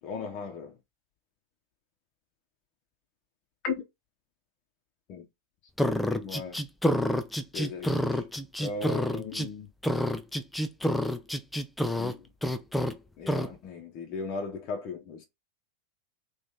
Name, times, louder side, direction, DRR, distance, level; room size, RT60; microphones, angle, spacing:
voice 1, 0.0-0.8 3.6-3.8 5.1-5.3 5.9-6.6 7.5-8.2 8.6-9.7 12.0-12.3 13.2-15.2, left 4 dB, 40° left, 0.7 m, -37 dB
sound 1, 5.8-9.5 9.8-12.1 12.4-12.9 13.3-13.5, equal, 5° left, 0.4 m, -28 dB
3.0 x 2.5 x 3.6 m
figure-of-eight pair, 90°, 0 cm